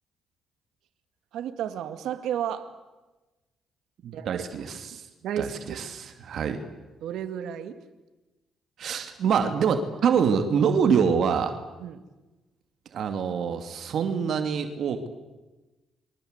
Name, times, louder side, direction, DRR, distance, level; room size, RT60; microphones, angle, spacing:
voice 1, 1.3-2.7 4.1-4.4 5.2-5.8 7.0-7.8 11.8-12.0, right 9 dB, 80° right, 9 dB, 2.3 m, -32 dB
voice 2, 4.0-5.1 5.4-6.6 8.8-11.5 12.9-15.1, right 6 dB, 65° right, 7 dB, 2.6 m, -25 dB
29.5 x 24.5 x 8.2 m, 1.1 s
cardioid pair, 90°, 0 cm